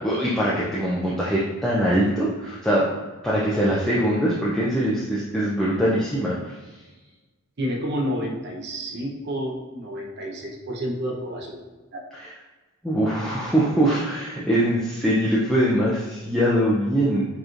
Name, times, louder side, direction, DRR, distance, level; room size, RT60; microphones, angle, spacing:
voice 1, 0.0-2.9 3.2-6.5 12.1-12.3 12.8-17.3, equal, ahead, -7 dB, 0.4 m, -22 dB
voice 2, 7.6-12.0, equal, 50° right, 0 dB, 0.7 m, -30 dB
4.9 x 3.0 x 2.4 m, 1.2 s
head